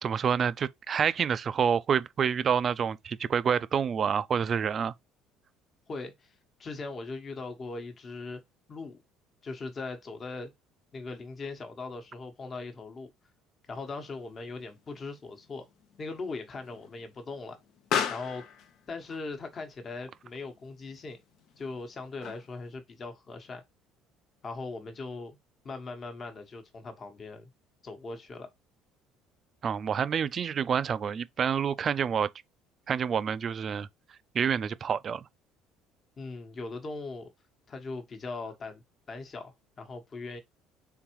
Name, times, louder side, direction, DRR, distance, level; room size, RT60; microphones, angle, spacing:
voice 1, 0.0-4.9 29.6-32.3 32.9-33.9 34.3-35.2, right 7 dB, 45° right, 0.3 m, -28 dB
voice 2, 5.9-6.3 6.6-8.4 8.7-9.0 9.4-10.5 10.9-13.1 13.7-15.7 16.0-17.6 18.1-18.5 18.9-21.2 21.6-23.6 24.4-25.4 25.6-27.5 27.8-28.5 36.2-37.3 37.7-40.4, left 3 dB, 40° left, 1.1 m, -40 dB
Explosion, 13.7-22.7, left 8 dB, 65° left, 0.7 m, -39 dB
3.8 x 3.5 x 3.0 m
hypercardioid pair, 70°, 0 cm